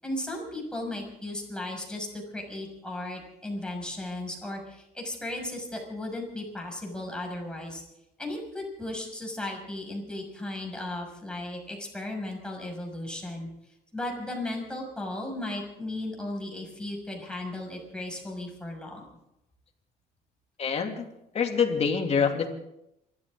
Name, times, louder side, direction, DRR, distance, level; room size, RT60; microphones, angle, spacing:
voice 1, 0.0-7.8 8.2-13.5 13.9-19.1, left 1 dB, 5° left, 0 dB, 6.2 m, -36 dB
voice 2, 20.6-21.0 21.3-22.5, left 6 dB, 40° left, 3 dB, 2.8 m, -25 dB
28.0 x 13.5 x 3.8 m, 0.83 s
cardioid pair, 110°, 17 cm